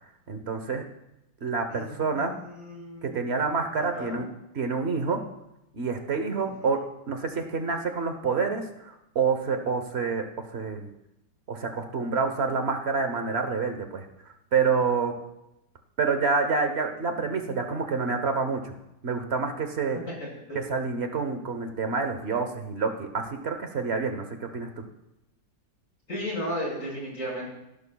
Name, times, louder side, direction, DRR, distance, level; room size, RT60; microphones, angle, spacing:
voice 1, 0.3-0.8 1.4-2.3 3.0-4.3 4.5-5.2 5.7-10.9 11.5-14.0 14.5-15.1 16.0-18.7 19.0-20.0 20.5-24.7, right 5 dB, 45° right, 6 dB, 1.1 m, -28 dB
voice 2, 1.7-3.3 3.7-4.2 6.4-6.5 20.5-20.6 21.1-21.2 26.1-27.5, equal, 40° left, -4 dB, 5.5 m, -35 dB
17.5 x 12.0 x 2.3 m, 0.88 s
omnidirectional pair, 2.0 m